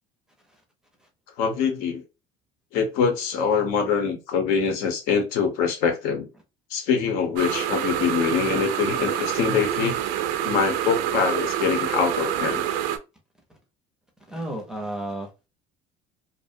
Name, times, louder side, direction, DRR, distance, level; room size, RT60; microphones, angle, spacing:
voice 1, 1.4-2.0 2.7-6.3 6.7-10.0 10.4-12.6, left 6 dB, 85° left, 0.8 m, -24 dB
sound 1, 7.4-13.0, right 10 dB, 75° right, 0.4 m, -27 dB
voice 2, 14.3-15.5, right 1 dB, 5° right, 0.5 m, -32 dB
2.5 x 2.0 x 2.5 m
cardioid pair, 175°, 15 cm